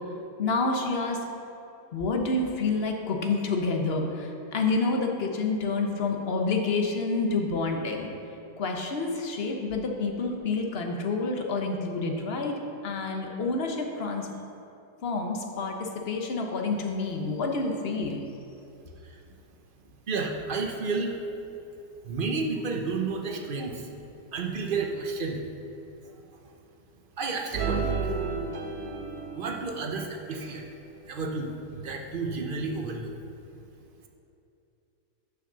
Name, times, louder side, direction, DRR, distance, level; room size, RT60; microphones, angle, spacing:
voice 1, 0.4-1.2 1.9-8.1 8.6-12.5 12.8-14.3 15.0-18.2, left 3 dB, 45° left, 2 dB, 0.9 m, -28 dB
voice 2, 20.1-21.2 22.0-23.9 24.3-25.4 27.2-28.3 29.4-30.6 31.0-33.1, right 4 dB, 45° right, 2 dB, 0.7 m, -31 dB
sound 1, 27.5-29.9 30.3-30.6, right 5 dB, 70° right, 1.3 m, -32 dB
6.4 x 6.0 x 6.7 m, 2.8 s
omnidirectional pair, 1.8 m